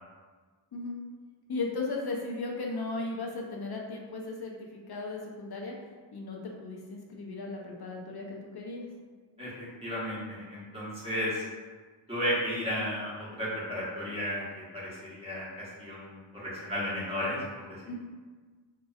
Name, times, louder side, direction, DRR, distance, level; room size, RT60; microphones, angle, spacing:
voice 1, 1.5-5.7 6.1-8.9 17.8-17.9, left 3 dB, 55° left, -1 dB, 0.6 m, -36 dB
voice 2, 9.4-11.5 12.1-17.8, equal, 10° right, -9 dB, 1.1 m, -34 dB
2.9 x 2.6 x 2.3 m, 1.4 s
wide cardioid pair, 65°, 48 cm